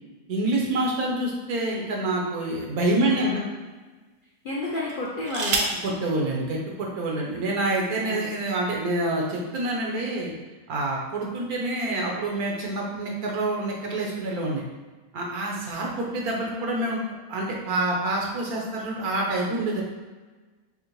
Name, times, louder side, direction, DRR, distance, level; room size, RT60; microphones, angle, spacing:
voice 1, 0.3-3.3 5.8-10.3 10.7-14.6 15.1-17.0 17.3-19.8, right 2 dB, 80° right, -2 dB, 1.4 m, -27 dB
sound 1, 1.1-2.3 3.1-3.2 4.8-5.9 7.0-7.1 7.4-7.8, right 3 dB, 60° right, 0.7 m, -30 dB
voice 2, 3.0-3.5 4.4-5.7 8.0-8.2, left 2 dB, 55° left, -5 dB, 0.6 m, -30 dB
6.4 x 2.2 x 3.0 m, 1.3 s
omnidirectional pair, 1.5 m